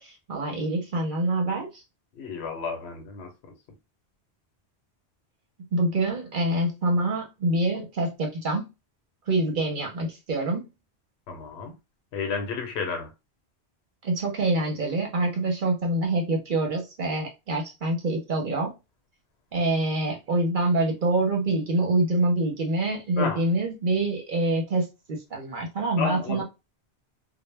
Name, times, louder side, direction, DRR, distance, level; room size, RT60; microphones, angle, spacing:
voice 1, 0.0-1.7 5.7-8.6 9.3-10.6 14.0-18.7 19.5-26.4, right 2 dB, 55° right, 0.8 m, -26 dB
voice 2, 2.2-3.3 11.3-11.7 12.1-13.1 23.2-23.4 26.0-26.4, left 5 dB, 80° left, 0.9 m, -31 dB
2.1 x 2.1 x 3.1 m
omnidirectional pair, 1.1 m